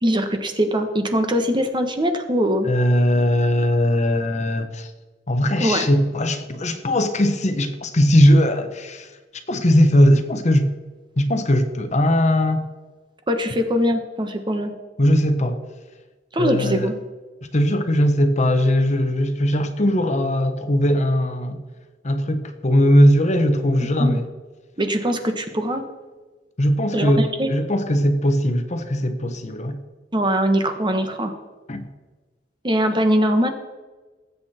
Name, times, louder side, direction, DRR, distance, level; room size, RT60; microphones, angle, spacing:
voice 1, 0.0-2.7 5.6-5.9 13.3-14.7 16.3-16.9 24.0-24.2 24.8-25.8 26.9-27.5 30.1-31.3 32.6-33.5, equal, 25° right, 6 dB, 1.3 m, -21 dB
voice 2, 2.6-4.9 5.3-9.1 9.5-10.7 11.2-12.7 15.0-15.6 16.4-16.9 17.5-21.6 22.0-24.3 26.6-29.8 31.7-31.8, equal, 40° left, 8 dB, 1.1 m, -19 dB
19.5 x 8.3 x 4.4 m, 1.3 s
head